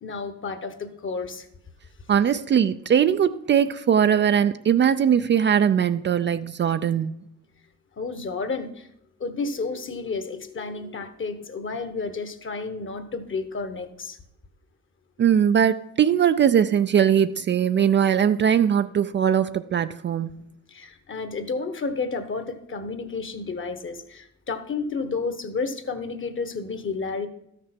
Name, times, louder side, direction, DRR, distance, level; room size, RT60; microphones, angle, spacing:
voice 1, 0.0-1.5 8.0-8.9 9.2-14.2 20.7-27.3, left 4 dB, 40° left, 1.2 m, -31 dB
voice 2, 2.1-7.2 15.2-20.4, right 8 dB, 40° right, 0.4 m, -20 dB
12.5 x 6.6 x 5.9 m
cardioid pair, 90°, 30 cm